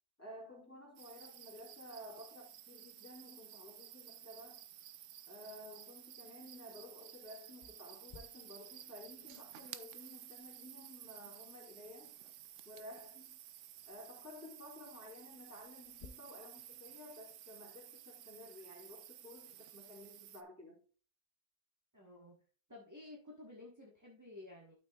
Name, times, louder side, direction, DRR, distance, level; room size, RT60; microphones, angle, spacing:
voice 1, 0.2-4.6 5.3-12.1 12.6-13.4 13.9-20.8, left 1 dB, 10° left, 3.2 m, -53 dB
sound 1, 1.0-20.4, right 12 dB, 70° right, 0.7 m, -54 dB
sound 2, 7.6-16.1, left 4 dB, 65° left, 0.4 m, -64 dB
voice 2, 21.9-22.4 22.7-24.7, left 2 dB, 15° right, 1.1 m, -53 dB
12.0 x 5.9 x 2.3 m
omnidirectional pair, 1.7 m